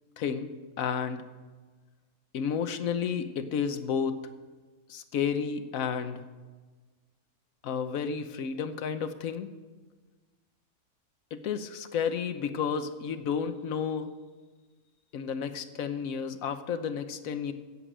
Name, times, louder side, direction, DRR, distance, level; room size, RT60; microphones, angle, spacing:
voice 1, 0.2-0.5 0.8-1.3 2.3-4.2 4.9-6.3 7.6-9.5 11.3-14.1 15.1-17.5, left 7 dB, 65° left, 10 dB, 1.2 m, -31 dB
16.0 x 7.8 x 6.1 m, 1.4 s
omnidirectional pair, 1.7 m